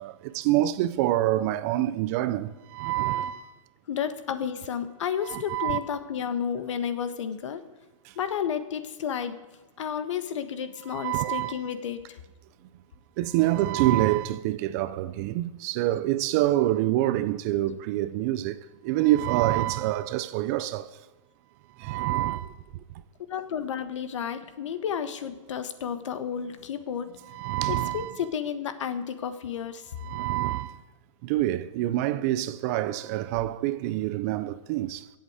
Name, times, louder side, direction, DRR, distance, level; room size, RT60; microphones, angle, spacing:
voice 1, 0.0-3.5 5.2-5.8 10.9-11.5 13.2-20.9 21.8-22.5 27.3-28.2 30.0-30.8 31.2-35.1, right 14 dB, 30° right, 0.5 m, -26 dB
voice 2, 3.1-3.4 3.9-7.6 8.1-9.4 9.8-12.2 23.3-27.2 27.7-29.8, left 8 dB, 70° left, 1.4 m, -32 dB
22.5 x 8.0 x 5.0 m
hypercardioid pair, 160°, 16 cm